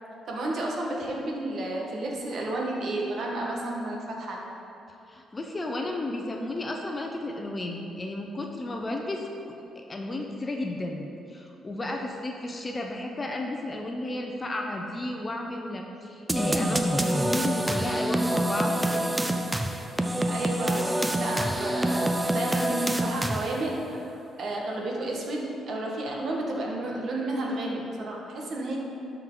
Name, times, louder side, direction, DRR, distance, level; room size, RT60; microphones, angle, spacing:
voice 1, 0.3-4.4 20.3-28.8, right 2 dB, 60° right, -2 dB, 1.5 m, -32 dB
voice 2, 5.1-9.3 9.8-19.1, left 2 dB, 25° left, 2 dB, 0.7 m, -33 dB
sound 1, 16.3-23.7, right 1 dB, 10° right, 0.5 m, -26 dB
12.5 x 4.6 x 3.9 m, 2.8 s
cardioid pair, 90°, 0 cm